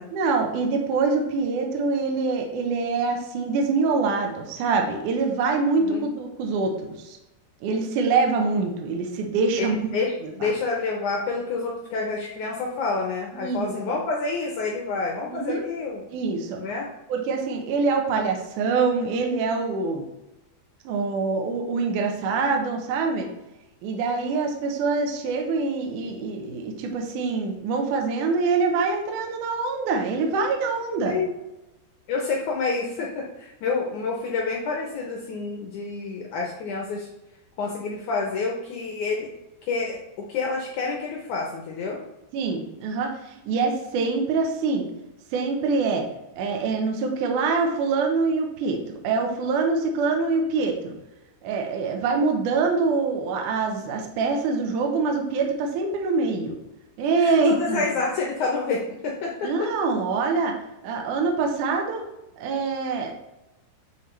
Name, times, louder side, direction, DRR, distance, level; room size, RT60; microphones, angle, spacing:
voice 1, 0.1-7.2 7.6-9.9 10.4-10.5 13.3-13.7 15.3-15.6 16.1-16.6 17.1-20.1 20.8-23.3 23.8-31.2 42.3-44.9 45.3-46.1 46.4-51.0 51.4-56.5 57.0-57.8 59.4-60.6 60.8-62.0 62.4-63.1, right 4 dB, 75° right, 2 dB, 1.9 m, -25 dB
voice 2, 9.6-16.0 16.6-16.9 31.1-31.3 32.1-37.1 37.6-39.3 39.7-42.0 57.2-59.7, left 4 dB, 85° left, 0 dB, 1.7 m, -28 dB
9.3 x 4.4 x 3.2 m, 0.94 s
omnidirectional pair, 4.7 m